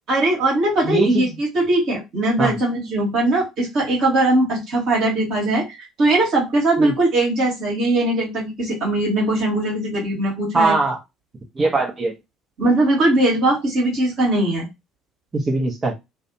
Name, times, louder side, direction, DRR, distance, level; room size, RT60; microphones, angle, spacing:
voice 1, 0.1-10.8 12.6-14.7, right 2 dB, 50° right, -3 dB, 1.4 m, -20 dB
voice 2, 0.8-1.3 2.4-2.5 6.8-6.9 10.5-11.0 11.6-12.1 15.3-15.9, right 3 dB, 25° right, 1 dB, 0.8 m, -20 dB
2.6 x 2.2 x 2.7 m, 0.21 s
figure-of-eight pair, 55°, 0 cm